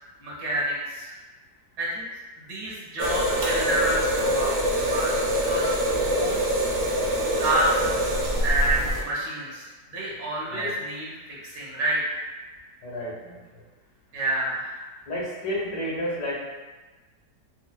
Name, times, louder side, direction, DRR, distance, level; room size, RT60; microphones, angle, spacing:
voice 1, 0.2-1.1 1.8-2.0 2.4-5.8 6.0-6.6 7.4-7.9 8.4-12.2 14.1-14.8, right 1 dB, 80° right, -6 dB, 1.7 m, -29 dB
sound 1, 3.0-9.0, equal, 60° right, 0.8 m, -24 dB
voice 2, 12.8-13.6 15.1-16.3, equal, 90° left, -5 dB, 1.8 m, -31 dB
5.6 x 2.1 x 2.2 m, 1.2 s
omnidirectional pair, 1.9 m